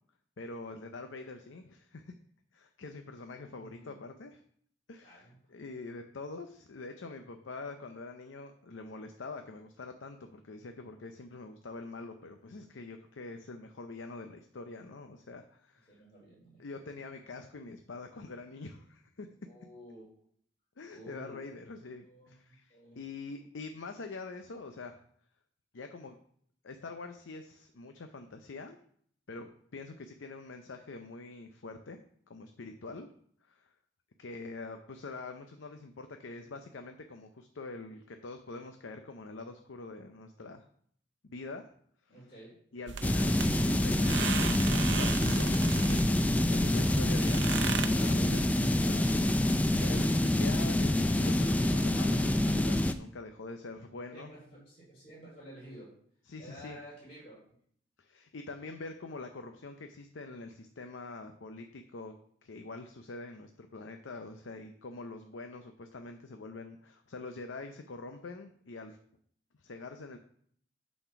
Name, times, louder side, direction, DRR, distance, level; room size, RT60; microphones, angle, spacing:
voice 1, 0.4-2.1 2.5-4.4 4.9-16.0 16.6-19.3 20.8-25.0 25.7-26.2 26.6-28.8 29.3-32.0 32.3-33.1 33.4-33.7 34.2-40.6 41.2-41.7 42.0-42.1 42.7-54.3 56.2-56.8 58.0-62.2 62.4-69.0 69.6-70.2, left 3 dB, 90° left, 6 dB, 0.6 m, -45 dB
voice 2, 3.5-4.0 5.0-5.4 15.9-16.9 19.4-20.1 20.9-21.4 22.0-23.0 42.1-42.6 54.1-56.0 56.4-57.4, equal, 30° left, -7 dB, 3.4 m, -51 dB
sound 1, 42.9-47.9, right 6 dB, 70° right, 0.6 m, -37 dB
sound 2, 43.0-52.9, left 1 dB, 10° left, 0.3 m, -27 dB
sound 3, 43.0-48.7, equal, 20° right, 2.9 m, -51 dB
8.9 x 4.3 x 5.8 m, 0.62 s
head